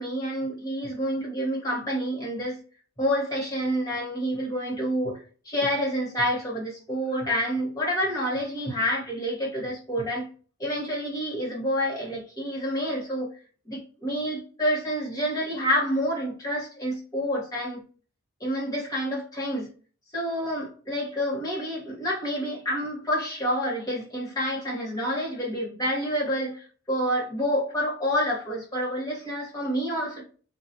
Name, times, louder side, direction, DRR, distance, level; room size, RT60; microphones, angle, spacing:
voice 1, 0.0-2.6 3.0-10.3 10.6-13.3 13.7-17.8 18.4-19.7 20.1-30.2, equal, 15° left, 0.9 m, -28 dB
2.8 x 2.3 x 2.5 m
head